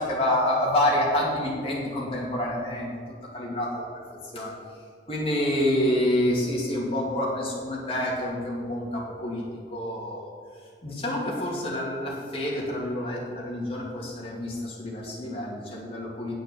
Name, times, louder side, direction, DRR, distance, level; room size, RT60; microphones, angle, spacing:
voice 1, 0.0-2.9 3.3-4.0 4.3-4.5 5.1-9.4 9.7-10.3 10.8-16.3, left 1 dB, 30° left, -4 dB, 2.4 m, -27 dB
9.4 x 6.7 x 6.8 m, 2.1 s
head